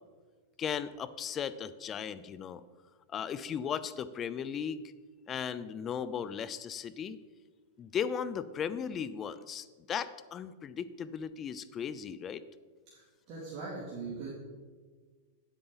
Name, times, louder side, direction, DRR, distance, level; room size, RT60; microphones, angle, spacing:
voice 1, 0.6-2.6 3.1-4.8 5.3-7.2 7.8-12.4, left 7 dB, 30° left, 15 dB, 0.5 m, -36 dB
voice 2, 12.9-14.3, right 4 dB, 45° right, -6 dB, 2.5 m, -41 dB
9.9 x 8.1 x 3.9 m, 1.4 s
hypercardioid pair, 120°, 0 cm